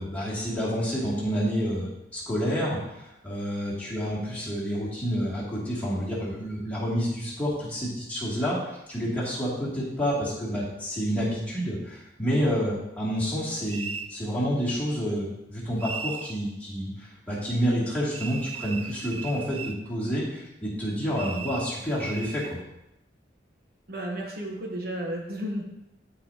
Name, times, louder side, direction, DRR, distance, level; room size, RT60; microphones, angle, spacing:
voice 1, 0.0-22.6, equal, 10° left, -8 dB, 2.7 m, -29 dB
sound 1, 13.7-14.1 15.8-16.4 18.1-19.8 21.1-22.5, right 6 dB, 30° right, 0.3 m, -37 dB
voice 2, 23.9-25.6, equal, 55° right, 0 dB, 1.1 m, -33 dB
13.0 x 5.1 x 2.9 m, 0.89 s
head